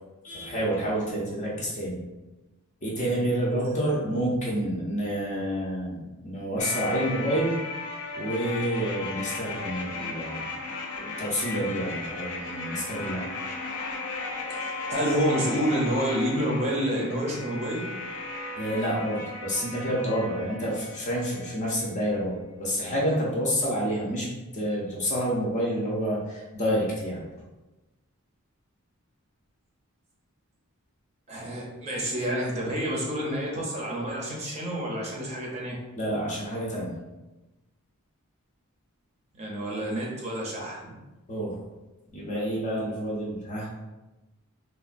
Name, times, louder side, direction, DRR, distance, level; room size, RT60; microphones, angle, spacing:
voice 1, 0.2-2.0 2.8-7.5 8.1-10.4 11.0-13.3 18.6-24.3 24.5-27.2 36.0-36.9 41.3-41.6 42.1-43.7, equal, 35° left, -5 dB, 0.5 m, -28 dB
sound 1, 6.6-21.6 21.9-22.0, left 3 dB, 80° left, 0.5 m, -36 dB
voice 2, 14.9-17.8 31.3-35.7 39.4-40.9, equal, 30° right, -3 dB, 0.5 m, -28 dB
3.2 x 2.2 x 2.4 m, 1.1 s
head